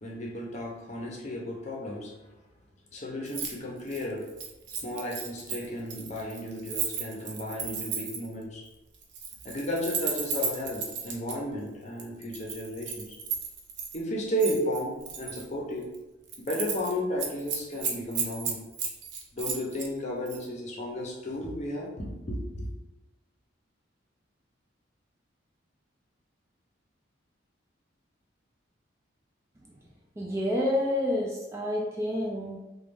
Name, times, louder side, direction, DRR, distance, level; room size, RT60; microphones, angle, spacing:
voice 1, 0.0-2.1 2.9-4.3 4.8-8.7 9.4-13.2 13.9-15.9 16.4-18.6 19.3-22.7, equal, 35° left, -2 dB, 0.7 m, -33 dB
Keys jangling, 3.3-3.5 3.8-8.3 9.0-11.3 12.0-14.0 14.4-15.4 15.8-16.0 16.3-16.9 17.2-19.9 20.3-20.4, right 6 dB, 65° right, 0.5 m, -34 dB
voice 2, 30.2-32.6, left 1 dB, 15° right, -2 dB, 0.3 m, -28 dB
3.0 x 2.3 x 3.4 m, 1.0 s
head